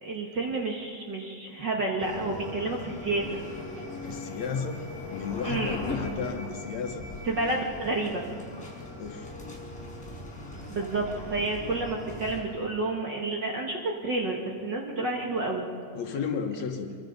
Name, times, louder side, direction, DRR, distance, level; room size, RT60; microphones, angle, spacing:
voice 1, 0.0-3.4 5.4-5.8 7.3-8.3 10.7-15.7, right 2 dB, 40° right, 0 dB, 1.9 m, -30 dB
sound 1, 2.0-12.4, left 2 dB, 5° left, 4.9 m, -39 dB
voice 2, 4.0-4.8 5.1-7.1 9.0-9.3 15.9-16.9, left 6 dB, 65° left, 5 dB, 2.3 m, -33 dB
25.5 x 23.0 x 5.3 m, 2.2 s
omnidirectional pair, 3.6 m